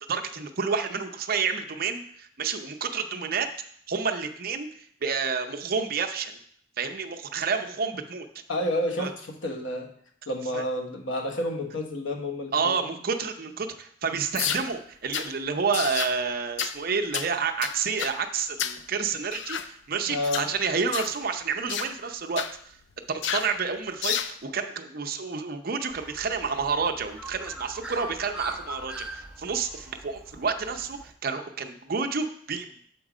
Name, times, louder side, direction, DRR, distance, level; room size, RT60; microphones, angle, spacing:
voice 1, 0.1-3.5 3.9-6.3 6.8-8.3 9.0-9.1 10.5-10.6 12.5-22.8 23.1-32.8, right 5 dB, 50° right, 6 dB, 0.6 m, -29 dB
voice 2, 8.5-9.9 10.3-12.8 20.1-20.5, left 1 dB, 90° left, 4 dB, 1.1 m, -30 dB
sound 1, 14.4-14.7 15.1-15.3 15.7-16.2 16.6-16.8 17.1-17.3 17.6-18.2 18.6-18.8 19.3-19.7 20.2-20.5 20.9-21.2 21.7-21.9 22.4-22.5 23.2-23.5 24.0-24.3, left 9 dB, 65° left, 0.4 m, -30 dB
Bird, 25.9-31.1, right 1 dB, 5° right, 0.6 m, -41 dB
7.2 x 4.5 x 4.9 m, 0.62 s
head